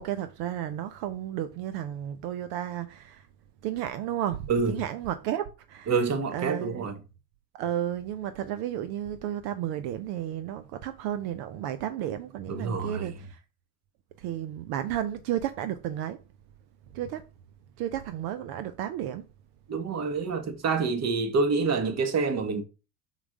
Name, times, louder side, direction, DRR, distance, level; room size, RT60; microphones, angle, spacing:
voice 1, 0.0-3.3 3.6-5.9 6.3-6.9 7.5-13.4 14.2-16.2 16.9-17.3 17.8-19.3, right 11 dB, 65° right, 0.7 m, -33 dB
voice 2, 5.9-7.0 12.5-13.1 19.7-22.6, right 4 dB, 40° right, 1.6 m, -27 dB
5.6 x 4.6 x 3.6 m
hypercardioid pair, 75°, 41 cm